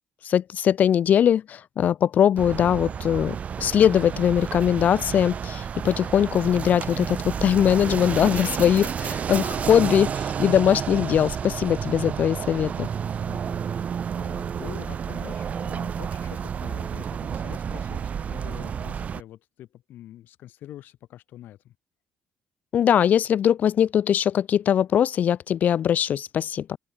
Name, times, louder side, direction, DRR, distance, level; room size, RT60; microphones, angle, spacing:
voice 1, 0.2-12.9 22.7-26.8, left 9 dB, 55° left, 0.9 m, -21 dB
sound 1, 2.4-19.2, right 7 dB, 45° right, 1.8 m, -30 dB
voice 2, 13.3-21.7, left 13 dB, 75° left, 2.3 m, -45 dB
open air
cardioid pair, 105°, 3 cm